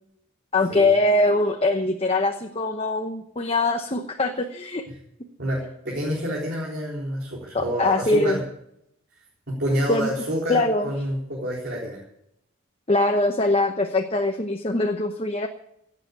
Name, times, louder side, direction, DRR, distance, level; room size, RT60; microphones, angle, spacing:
voice 1, 0.5-4.9 7.5-8.4 9.9-10.1 10.5-10.9 12.9-15.5, left 2 dB, 25° left, 4 dB, 1.0 m, -22 dB
voice 2, 5.4-8.4 9.5-12.0, equal, 50° right, -3 dB, 3.9 m, -28 dB
17.0 x 7.8 x 8.8 m, 0.75 s
head